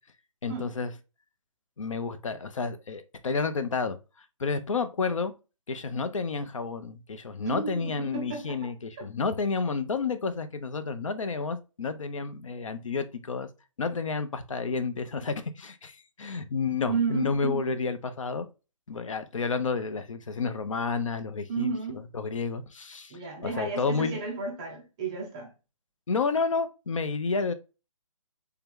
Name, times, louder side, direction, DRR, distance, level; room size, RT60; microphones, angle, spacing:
voice 1, 0.4-0.9 1.8-4.0 4.4-5.3 5.7-13.5 13.8-18.5 18.9-21.7 22.1-24.2 26.1-27.5, left 4 dB, 70° left, 0.7 m, -30 dB
voice 2, 7.5-8.7 9.0-9.1 16.9-17.7 21.5-22.0 23.1-25.5, right 5 dB, 10° right, 0.3 m, -33 dB
3.4 x 2.9 x 3.5 m
hypercardioid pair, 155°, 17 cm